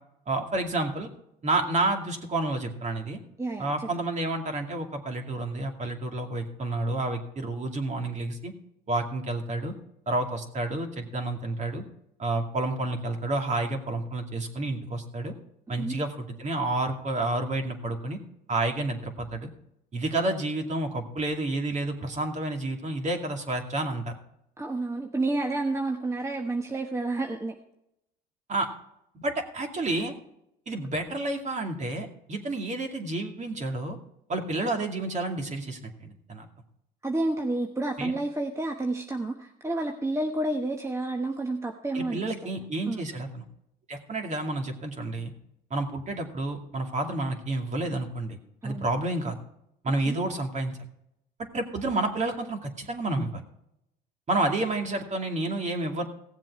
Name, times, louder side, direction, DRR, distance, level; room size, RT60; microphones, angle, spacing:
voice 1, 0.3-1.1 1.4-3.2 3.6-8.5 8.9-9.7 10.1-11.8 12.2-15.3 15.7-18.2 18.5-19.5 19.9-24.2 28.5-28.7 29.2-30.1 30.7-34.0 34.3-36.5 38.0-38.1 41.9-43.4 43.9-45.3 45.7-48.4 48.6-49.4 49.8-50.8 51.4-53.4 54.3-56.0, right 2 dB, 35° right, 4 dB, 2.4 m, -30 dB
voice 2, 3.4-3.9 15.7-16.0 24.6-27.5 37.0-42.5 42.9-43.1 48.6-48.9 50.1-50.2, right 2 dB, 15° right, 3 dB, 1.1 m, -30 dB
16.5 x 7.5 x 4.8 m, 0.79 s
supercardioid pair, 95°, 21 cm